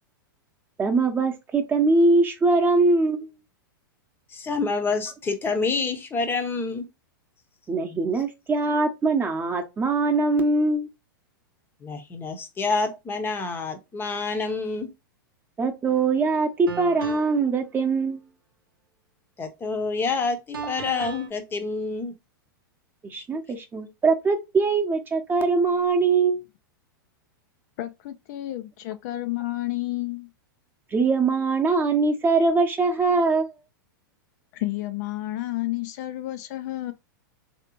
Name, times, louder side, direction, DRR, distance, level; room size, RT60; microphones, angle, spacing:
voice 1, 0.8-3.3 7.7-10.9 15.6-18.2 23.0-26.4 30.9-33.5, right 3 dB, 20° right, 0.8 m, -22 dB
voice 2, 4.3-6.9 11.8-14.9 19.4-22.1 23.1-23.2, left 4 dB, 20° left, 0.7 m, -28 dB
sound 1, 15.9-16.0 16.7-17.5 20.5-21.3, right 6 dB, 85° right, 0.8 m, -36 dB
voice 3, 27.8-30.3 34.5-36.9, left 16 dB, 50° left, 0.4 m, -31 dB
3.2 x 2.8 x 2.9 m
hypercardioid pair, 110°, 11 cm